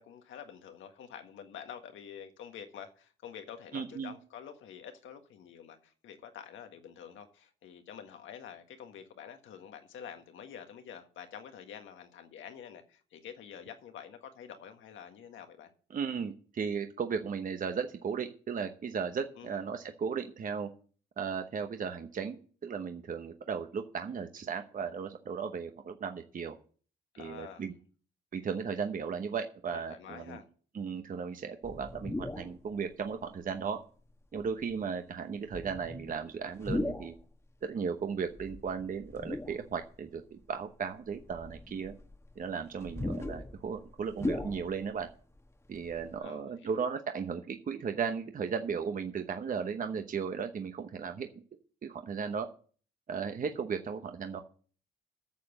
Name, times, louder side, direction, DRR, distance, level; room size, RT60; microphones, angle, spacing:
voice 1, 0.0-15.7 19.4-19.6 27.1-27.6 29.7-30.4 46.2-46.9, left 8 dB, 80° left, 1.7 m, -48 dB
voice 2, 3.7-4.1 15.9-20.7 21.2-26.6 27.2-27.7 28.3-30.4 30.7-33.8 34.3-37.1 37.6-41.9 42.4-45.1 45.7-51.3 51.8-52.5 53.1-54.4, right 6 dB, 45° right, 1.0 m, -36 dB
sound 1, 31.6-32.6 33.2-33.3 34.4-34.7 35.5-37.2 38.3-39.9 40.4-40.5 41.1-45.1 45.4-45.5 45.7-46.2, left 2 dB, 15° left, 1.3 m, -38 dB
9.2 x 6.9 x 7.9 m
cardioid pair, 90°, 20 cm